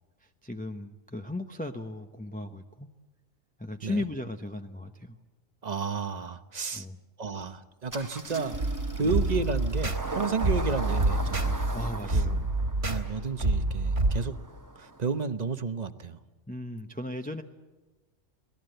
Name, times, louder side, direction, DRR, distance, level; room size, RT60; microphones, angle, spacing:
voice 1, 0.2-2.9 3.6-5.2 6.7-7.0 9.0-9.2 11.7-12.5 16.5-17.4, left 1 dB, 10° left, 4 dB, 0.7 m, -36 dB
voice 2, 5.6-6.9 7.2-8.6 9.0-11.6 12.1-12.2 12.8-14.4 14.8-16.2, right 5 dB, 35° right, 11 dB, 1.0 m, -32 dB
Engine starting, 7.9-15.2, right 1 dB, 15° right, 1.1 m, -40 dB
sound 1, 8.5-14.2, right 2 dB, 60° right, 2.6 m, -28 dB
26.5 x 18.5 x 7.9 m, 1.2 s
omnidirectional pair, 1.3 m